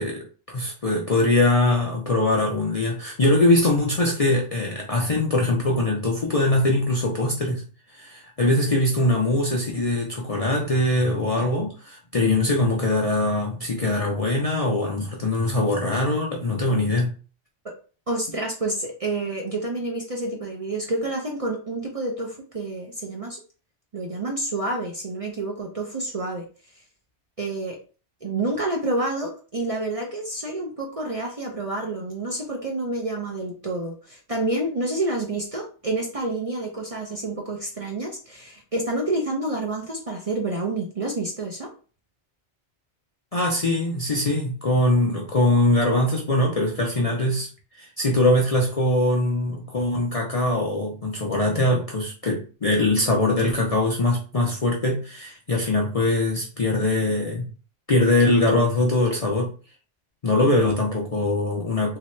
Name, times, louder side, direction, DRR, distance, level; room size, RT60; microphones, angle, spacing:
voice 1, 0.0-7.6 7.9-17.1 43.3-47.5 47.8-57.5 57.9-59.5 60.2-62.0, left 2 dB, 45° left, -1 dB, 0.5 m, -22 dB
voice 2, 18.1-23.4 23.9-26.4 27.4-27.8 28.2-41.7, right 2 dB, 40° right, 0 dB, 0.6 m, -28 dB
3.2 x 2.8 x 3.0 m, 0.37 s
omnidirectional pair, 1.2 m